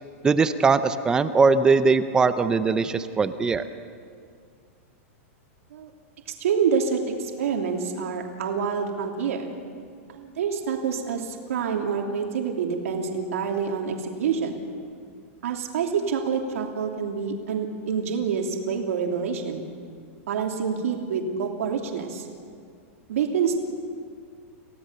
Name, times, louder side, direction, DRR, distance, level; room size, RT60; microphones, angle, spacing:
voice 1, 0.2-3.6, right 4 dB, 10° right, 11 dB, 0.6 m, -20 dB
voice 2, 6.4-9.5 10.1-14.6 15.4-19.7 20.3-22.3 23.1-23.6, right 6 dB, 80° right, 1 dB, 2.9 m, -27 dB
28.5 x 17.0 x 6.8 m, 2.2 s
supercardioid pair, 170°, 8 cm